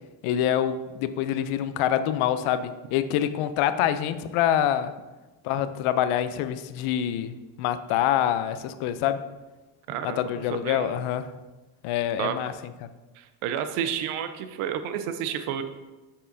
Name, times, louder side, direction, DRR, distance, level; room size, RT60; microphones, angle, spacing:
voice 1, 0.2-4.9 5.4-9.2 10.0-11.3 11.8-12.5, left 10 dB, 85° left, 12 dB, 0.6 m, -26 dB
voice 2, 9.9-10.2 10.5-11.0 12.2-12.3 13.2-15.6, right 9 dB, 90° right, 9 dB, 0.6 m, -30 dB
6.5 x 5.5 x 2.6 m, 1.2 s
cardioid pair, 95°, 49 cm